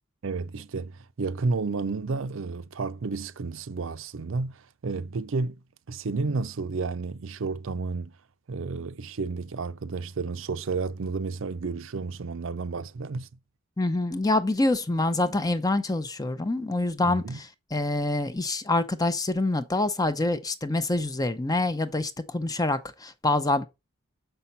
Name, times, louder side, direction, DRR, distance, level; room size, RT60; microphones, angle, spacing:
voice 1, 0.2-5.6 5.9-8.1 8.5-13.3 17.0-17.4, right 4 dB, 65° right, 0.5 m, -31 dB
voice 2, 13.8-17.2 17.7-23.7, left 2 dB, 20° left, 0.7 m, -26 dB
6.7 x 5.8 x 4.0 m
head